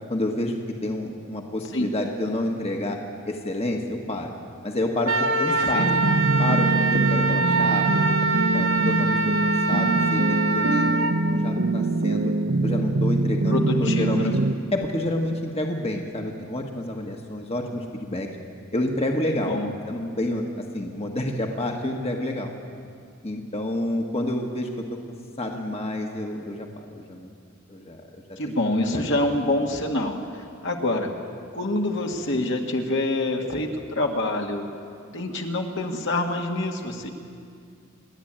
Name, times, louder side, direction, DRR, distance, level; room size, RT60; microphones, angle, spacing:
voice 1, 0.1-3.0 3.3-4.3 4.6-7.8 8.5-12.3 12.6-14.3 14.7-18.3 18.7-19.6 19.9-22.5 23.2-24.8 25.4-27.3 27.7-28.0 28.3-28.4 28.9-29.1, left 1 dB, 30° left, 2 dB, 1.5 m, -29 dB
Wind instrument woodwind instrument, 5.0-11.1, right 2 dB, 70° right, 1.4 m, -24 dB
voice 2, 5.5-5.9 13.5-14.4 19.3-19.7 28.4-31.1 31.5-34.6 35.1-37.1, left 2 dB, 60° left, 1 dB, 1.9 m, -26 dB
sound 1, 5.8-14.5, right 2 dB, 50° right, 0.7 m, -23 dB
28.5 x 11.5 x 8.9 m, 2.3 s
head